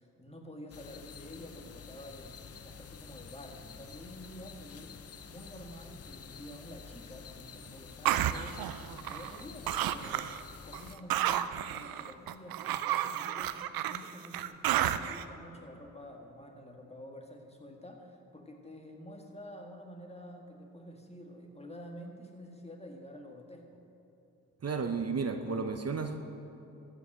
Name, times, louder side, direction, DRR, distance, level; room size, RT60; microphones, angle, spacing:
voice 1, 0.0-5.0 5.2-23.8, equal, 20° left, 2 dB, 1.9 m, -49 dB
sound 1, 0.7-11.0, left 6 dB, 45° left, 0.7 m, -49 dB
sound 2, 8.0-9.4 9.7-10.4 10.7-15.2, right 12 dB, 80° right, 0.5 m, -32 dB
voice 2, 24.6-26.2, right 5 dB, 45° right, 6 dB, 0.9 m, -32 dB
14.0 x 5.4 x 7.5 m, 2.9 s
supercardioid pair, 45°, 35 cm